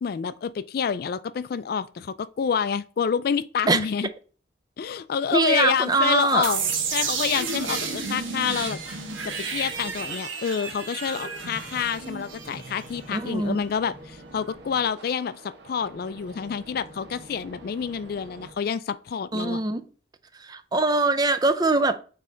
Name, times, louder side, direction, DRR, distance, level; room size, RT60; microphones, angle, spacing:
voice 1, 0.0-4.1 4.8-8.8 9.2-19.6, left 7 dB, 50° left, 0.3 m, -28 dB
voice 2, 5.3-6.4 13.1-13.6 19.3-19.8 20.4-21.9, right 3 dB, 20° right, 0.4 m, -22 dB
sound 1, 6.4-18.5, right 1 dB, 55° right, 1.2 m, -46 dB
sound 2, 6.4-13.2, right 5 dB, 85° right, 1.1 m, -31 dB
8.4 x 3.2 x 3.9 m
head